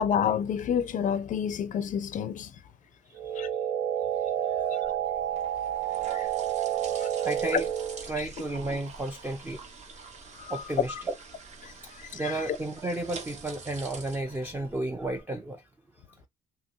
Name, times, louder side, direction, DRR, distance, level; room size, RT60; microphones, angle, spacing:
voice 1, 0.0-2.5 3.4-3.5 4.8-4.9 6.1-6.3 7.0-7.1 7.5-7.6 8.2-8.3 10.4-10.6 11.6-11.7 12.1-12.4, left 8 dB, 50° left, 0.4 m, -29 dB
sound 1, 3.2-8.1, right 10 dB, 90° right, 0.6 m, -29 dB
sound 2, 4.8-15.2, right 4 dB, 40° right, 0.8 m, -46 dB
voice 2, 7.2-7.7 8.1-9.6 10.5-11.1 12.1-15.6, right 2 dB, 10° right, 0.4 m, -32 dB
2.9 x 2.7 x 2.6 m
cardioid pair, 110°, 17 cm